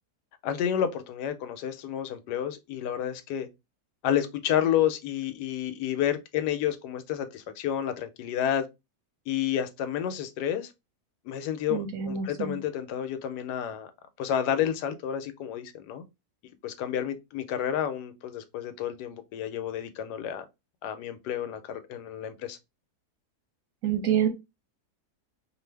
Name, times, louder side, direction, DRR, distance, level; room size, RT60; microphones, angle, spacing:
voice 1, 0.4-3.5 4.0-8.7 9.3-10.7 11.3-13.9 14.2-16.0 16.6-20.4 20.8-22.6, left 10 dB, 90° left, 1.2 m, -30 dB
voice 2, 11.7-12.6 23.8-24.3, right 9 dB, 65° right, 0.9 m, -27 dB
2.6 x 2.4 x 3.2 m
omnidirectional pair, 1.7 m